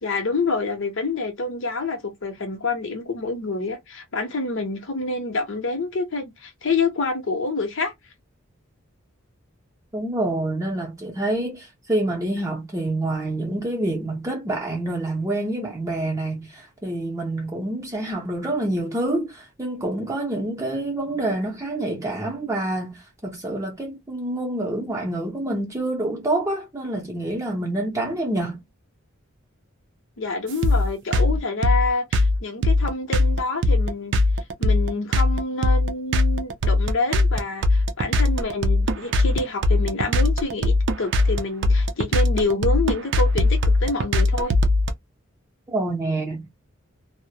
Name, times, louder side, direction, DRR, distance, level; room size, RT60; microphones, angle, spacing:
voice 1, 0.0-7.9 30.2-34.2 34.6-44.5, left 3 dB, 65° left, 0.7 m, -27 dB
voice 2, 9.9-28.6 45.7-46.5, right 1 dB, 15° right, 0.6 m, -27 dB
sound 1, 30.6-44.9, left 2 dB, 60° right, 0.4 m, -19 dB
2.2 x 2.0 x 2.7 m
head